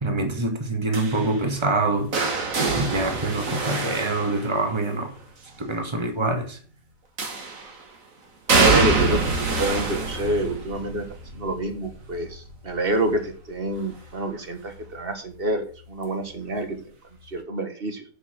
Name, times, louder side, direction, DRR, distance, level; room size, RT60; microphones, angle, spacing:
voice 1, 0.0-2.1 2.8-5.1 5.6-6.6, right 2 dB, 15° right, 1.8 m, -25 dB
sound 1, 0.9-5.0 7.2-7.8 8.5-14.3 14.6-15.1 16.3-16.4, right 3 dB, 55° right, 2.2 m, -26 dB
voice 2, 8.5-11.1 11.3-16.8 17.3-18.0, right 2 dB, 35° right, 1.7 m, -27 dB
7.4 x 7.0 x 7.5 m
omnidirectional pair, 1.7 m